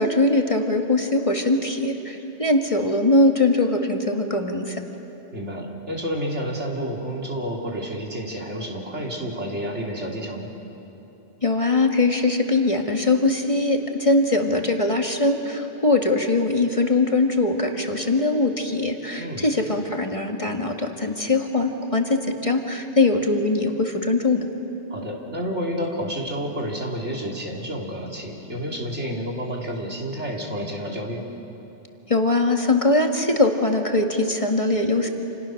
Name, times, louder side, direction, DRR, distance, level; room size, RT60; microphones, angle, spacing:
voice 1, 0.0-4.8 11.4-24.4 32.1-35.1, left 2 dB, 30° left, 3 dB, 1.6 m, -21 dB
voice 2, 5.3-10.5 19.2-19.5 24.9-31.2, equal, 80° right, -1 dB, 3.4 m, -30 dB
28.5 x 28.0 x 6.4 m, 3.0 s
omnidirectional pair, 1.2 m